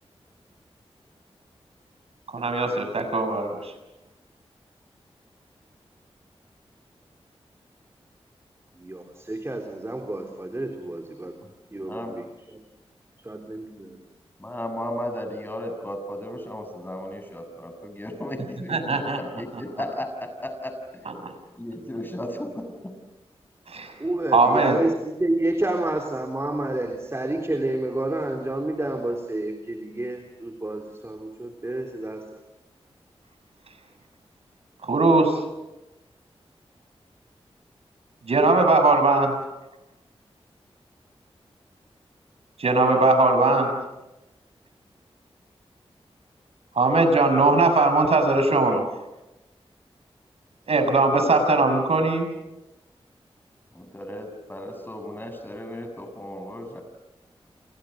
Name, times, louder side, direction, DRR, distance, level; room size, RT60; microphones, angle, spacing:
voice 1, 2.3-3.7 18.7-19.2 21.2-21.3 23.7-23.9 24.3-24.8 34.8-35.4 38.2-39.4 42.6-43.7 46.7-48.8 50.7-52.3, right 3 dB, 75° right, 7 dB, 6.5 m, -20 dB
voice 2, 8.8-11.3 11.7-12.0 13.3-14.0 24.0-24.9 25.2-32.2, right 1 dB, 25° right, 3 dB, 3.7 m, -29 dB
voice 3, 11.8-12.1 14.4-21.1 21.6-23.0 53.7-56.8, left 1 dB, 20° left, 6 dB, 6.9 m, -35 dB
29.5 x 28.0 x 6.6 m, 0.99 s
wide cardioid pair, 70°, 11 cm